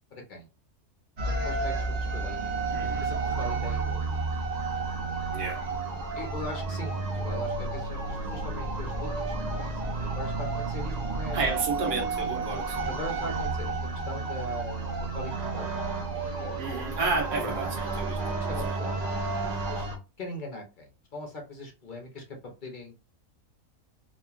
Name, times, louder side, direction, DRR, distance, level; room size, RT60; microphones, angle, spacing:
voice 1, 0.1-0.5 1.4-2.6 3.0-4.0 6.1-11.5 12.8-13.8 14.1-15.9 16.4-16.6 17.4-17.7 18.4-19.0 19.4-19.9 20.2-22.9, left 2 dB, 50° left, 0.6 m, -40 dB
sound 1, 1.2-20.0, right 3 dB, 65° right, 0.4 m, -31 dB
voice 2, 2.7-3.0 5.3-5.6 11.3-12.9 16.6-18.2 18.6-18.7, right 3 dB, 40° right, 0.9 m, -31 dB
2.9 x 2.4 x 2.3 m
omnidirectional pair, 1.6 m